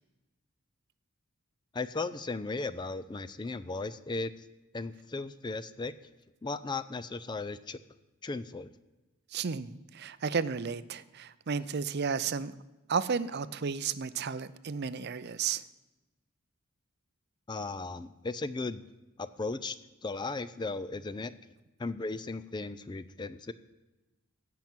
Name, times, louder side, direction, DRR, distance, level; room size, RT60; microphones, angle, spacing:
voice 1, 1.7-4.3 4.7-5.9 6.4-7.8 8.2-8.7 17.5-18.8 19.2-19.8 20.0-21.3 21.8-23.5, left 3 dB, 20° left, 14 dB, 0.4 m, -36 dB
voice 2, 9.3-12.5 12.9-15.6, right 6 dB, 50° right, 15 dB, 0.5 m, -33 dB
15.5 x 5.9 x 9.0 m, 1.1 s
head